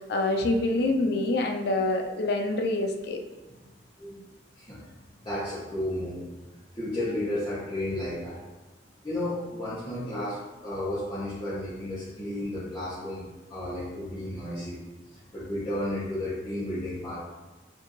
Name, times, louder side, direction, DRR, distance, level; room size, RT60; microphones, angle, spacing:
voice 1, 0.1-3.2, left 2 dB, 60° left, 3 dB, 0.5 m, -26 dB
voice 2, 5.2-6.2 6.7-8.4 9.0-14.8 15.3-17.1, left 1 dB, 20° left, -13 dB, 1.1 m, -33 dB
4.3 x 2.7 x 3.1 m, 1.1 s
head